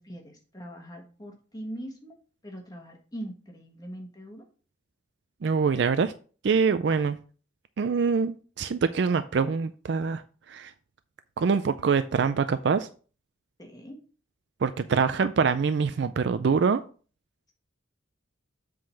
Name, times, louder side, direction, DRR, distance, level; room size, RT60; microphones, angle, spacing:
voice 1, 0.0-2.2 2.4-4.4 5.7-5.9 13.6-14.0, right 1 dB, 20° left, 2 dB, 1.4 m, -41 dB
voice 2, 5.4-6.1 6.4-7.2 7.8-10.2 10.5-10.7 11.4-12.9 14.6-16.8, right 5 dB, 60° right, 11 dB, 0.4 m, -24 dB
7.7 x 3.8 x 5.6 m, 0.39 s
head